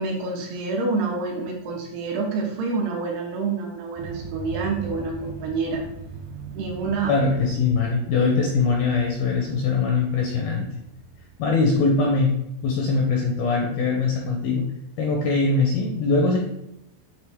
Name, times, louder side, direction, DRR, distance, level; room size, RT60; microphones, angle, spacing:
voice 1, 0.0-5.8 6.5-7.2, right 4 dB, 75° right, -1 dB, 2.7 m, -27 dB
sound 1, 3.9-12.4, right 6 dB, 90° right, 1.8 m, -40 dB
voice 2, 7.1-10.7 11.4-12.3 12.6-14.7 15.0-16.4, left 4 dB, 75° left, 0 dB, 2.2 m, -22 dB
9.2 x 3.6 x 3.5 m, 0.83 s
omnidirectional pair, 5.2 m